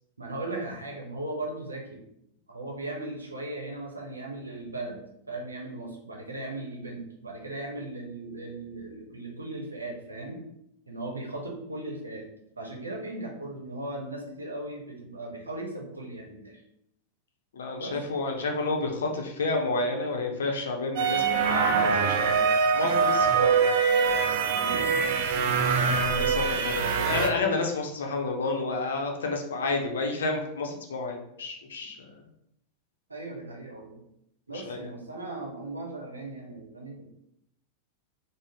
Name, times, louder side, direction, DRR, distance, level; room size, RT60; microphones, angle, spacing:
voice 1, 0.2-2.0 2.5-5.0 5.3-10.4 10.9-12.3 12.6-16.6 17.8-18.0 24.5-26.8 33.1-34.0 34.5-37.0, right 2 dB, 80° right, 0 dB, 0.7 m, -37 dB
voice 2, 17.5-23.8 25.7-32.2 34.7-34.9, left 3 dB, 65° left, 2 dB, 0.6 m, -30 dB
sound 1, 21.0-27.3, right 5 dB, 50° right, 0.4 m, -24 dB
3.8 x 2.0 x 3.3 m, 0.78 s
figure-of-eight pair, 90°, 0 cm